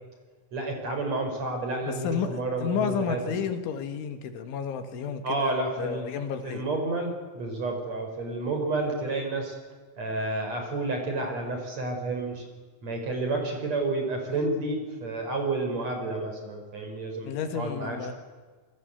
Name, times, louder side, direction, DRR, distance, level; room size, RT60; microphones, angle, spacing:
voice 1, 0.5-3.4 5.2-6.1 6.4-9.5 10.0-12.4 12.8-18.1, right 2 dB, 35° right, 4 dB, 5.7 m, -30 dB
voice 2, 1.8-6.6 17.3-18.1, left 7 dB, 80° left, 7 dB, 4.3 m, -31 dB
27.0 x 24.0 x 8.3 m, 1.4 s
omnidirectional pair, 5.4 m